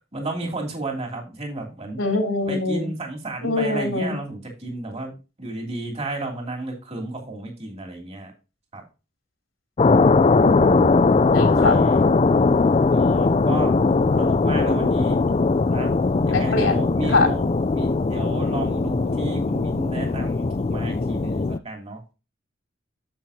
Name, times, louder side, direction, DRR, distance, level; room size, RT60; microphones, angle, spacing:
voice 1, 0.1-2.0 2.5-5.1 5.4-8.3 8.7-8.8 11.3-12.0 12.9-13.7 14.2-15.2 15.7-15.9 16.3-22.0, right 2 dB, 30° right, 1 dB, 2.8 m, -32 dB
voice 2, 2.0-2.9 3.4-4.1 10.4-11.0 11.3-11.8 16.3-17.3, left 3 dB, 85° left, 2 dB, 3.2 m, -23 dB
sound 1, 9.8-21.6, left 3 dB, 30° left, 0.4 m, -20 dB
10.0 x 7.6 x 2.8 m, 0.30 s
head